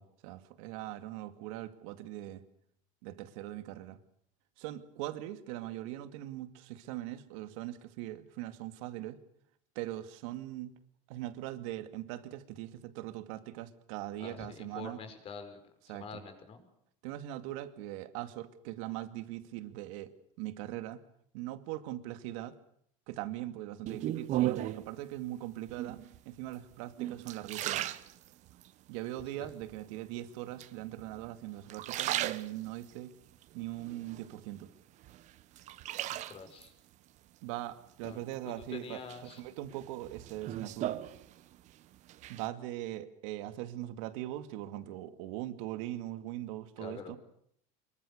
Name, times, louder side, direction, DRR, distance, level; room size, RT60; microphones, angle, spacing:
voice 1, 0.0-2.4 3.0-4.0 4.6-9.2 9.8-10.7 11.1-15.0 15.9-16.2 17.0-21.0 21.3-22.6 23.1-27.9 28.9-33.1 33.5-34.7 37.4-41.0 42.3-47.2, right 14 dB, 75° right, 10 dB, 2.4 m, -41 dB
voice 2, 14.2-15.6 15.9-16.7 29.4-29.5 36.1-36.7 38.0-38.2 38.6-39.4 46.8-47.1, left 5 dB, 35° left, 8 dB, 5.3 m, -46 dB
sound 1, 23.9-24.9 25.7-26.2 26.7-28.7 29.2-29.8 30.6-31.3 31.6-32.9 33.4-34.6 35.0-36.7 38.0-38.6 39.1-41.7 42.0-42.5, right 14 dB, 45° right, 1.2 m, -36 dB
26.0 x 23.0 x 6.8 m, 0.69 s
cardioid pair, 145°, 17 cm